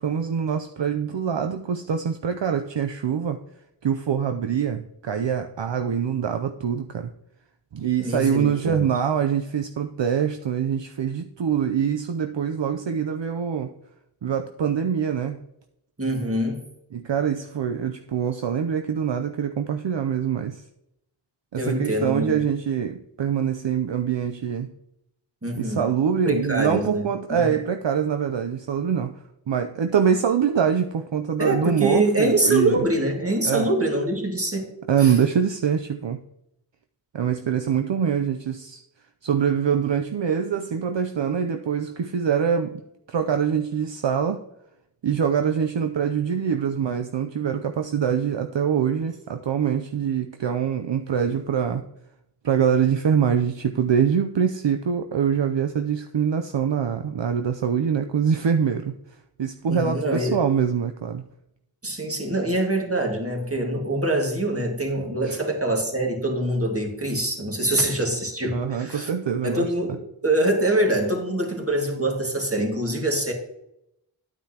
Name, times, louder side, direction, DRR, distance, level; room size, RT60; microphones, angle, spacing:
voice 1, 0.0-3.4 3.8-7.1 7.7-13.7 14.2-15.4 16.9-20.6 21.5-24.7 25.6-29.2 29.5-32.8 33.4-33.7 34.9-36.2 37.1-38.8 39.2-42.8 43.1-44.4 45.0-51.8 52.4-58.9 59.4-61.2 65.2-65.4 68.5-69.7, right 7 dB, 65° right, 0.6 m, -24 dB
voice 2, 8.0-8.9 16.0-16.6 21.5-22.4 25.4-25.8 26.2-27.4 31.4-34.6 35.0-35.2 59.7-60.4 61.8-69.1 69.4-70.0 70.2-73.3, right 1 dB, 30° right, 2.0 m, -24 dB
9.7 x 9.1 x 2.8 m
wide cardioid pair, 50°, 48 cm